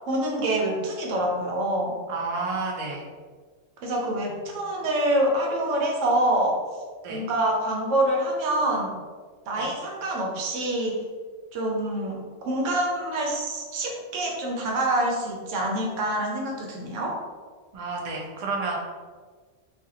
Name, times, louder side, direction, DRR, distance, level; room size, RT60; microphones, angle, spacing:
voice 1, 0.1-2.0 3.8-6.6 7.1-8.9 9.5-11.0 11.5-17.2, right 1 dB, 80° right, 0 dB, 1.0 m, -26 dB
voice 2, 2.1-3.0 4.2-4.5 7.0-7.2 9.6-9.7 17.7-18.8, right 3 dB, 55° right, -1 dB, 0.4 m, -31 dB
2.5 x 2.3 x 2.7 m, 1.5 s
omnidirectional pair, 1.3 m